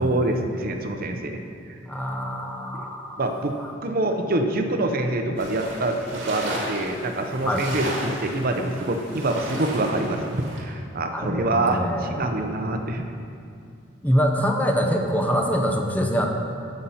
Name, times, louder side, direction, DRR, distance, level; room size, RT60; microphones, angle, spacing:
voice 1, 0.0-1.4 2.8-2.9 3.2-3.6 3.8-13.0, right 2 dB, 50° right, 5 dB, 0.7 m, -25 dB
voice 2, 1.8-3.2 7.4-7.7 11.1-12.7 14.0-16.3, equal, 10° left, 2 dB, 0.8 m, -25 dB
sound 1, 5.4-10.6, right 1 dB, 70° right, 2.3 m, -34 dB
16.0 x 5.7 x 4.3 m, 2.4 s
head